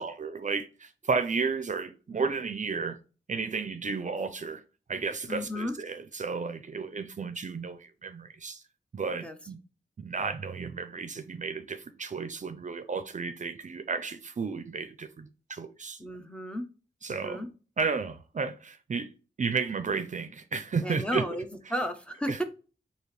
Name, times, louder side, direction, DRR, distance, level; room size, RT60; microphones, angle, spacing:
voice 1, 0.0-3.0 3.3-4.6 4.9-8.6 8.9-9.6 10.0-16.0 17.0-17.4 17.8-19.1 19.4-21.2 22.3-22.4, right 5 dB, 50° right, 0.5 m, -33 dB
voice 2, 5.3-5.7 9.2-9.4 16.0-16.6 17.1-17.5 20.8-22.4, equal, 5° left, 0.6 m, -33 dB
4.7 x 2.8 x 3.0 m
wide cardioid pair, 120°, 17 cm